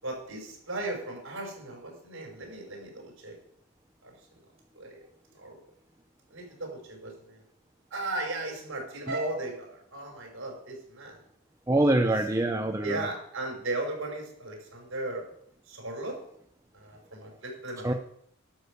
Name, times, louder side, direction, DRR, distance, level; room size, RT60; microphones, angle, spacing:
voice 1, 0.0-3.4 4.0-4.1 4.8-5.0 5.4-5.6 6.3-7.4 7.9-11.2 11.7-11.8 12.8-15.3 15.7-16.2 16.7-18.0, right 2 dB, 65° right, 0 dB, 5.2 m, -36 dB
voice 2, 11.7-13.1 17.8-17.9, right 1 dB, 15° right, 4 dB, 0.6 m, -25 dB
12.0 x 6.4 x 6.7 m, 0.69 s
head